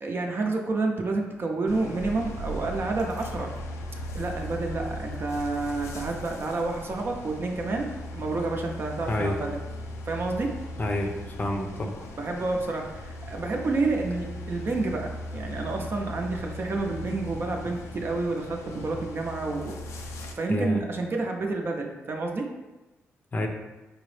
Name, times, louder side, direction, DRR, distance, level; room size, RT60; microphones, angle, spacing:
voice 1, 0.0-3.5 4.1-9.5 10.1-10.5 12.2-19.8 20.4-22.5, right 3 dB, 50° right, 1 dB, 0.6 m, -29 dB
sound 1, 1.7-20.3, left 1 dB, 80° left, 0.4 m, -38 dB
voice 2, 9.1-9.4 10.8-12.1 20.5-20.8 23.3-23.5, left 1 dB, 35° left, 3 dB, 0.6 m, -28 dB
4.6 x 2.0 x 3.2 m, 1.1 s
supercardioid pair, 60°, 5 cm